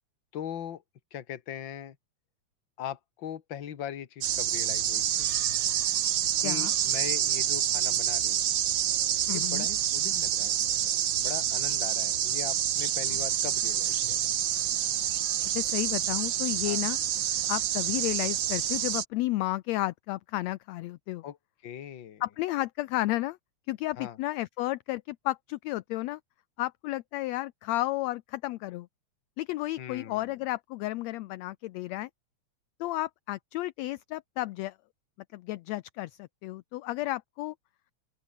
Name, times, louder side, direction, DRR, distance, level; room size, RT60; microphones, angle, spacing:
voice 1, 0.3-0.8 1.1-2.0 2.8-5.3 6.4-8.5 9.3-10.9 11.2-14.3 16.6-16.8 21.2-21.4 21.6-22.2 24.0-24.2 29.8-30.3, left 10 dB, 45° left, 2.0 m, -40 dB
sound 1, 4.2-19.0, right 11 dB, 70° right, 1.1 m, -28 dB
voice 2, 9.3-9.7 15.5-17.0 17.5-21.2 22.2-23.4 23.7-26.2 26.6-28.9 29.4-32.1 32.8-34.8 35.3-37.6, left 17 dB, 75° left, 1.7 m, -32 dB
open air
omnidirectional pair, 3.4 m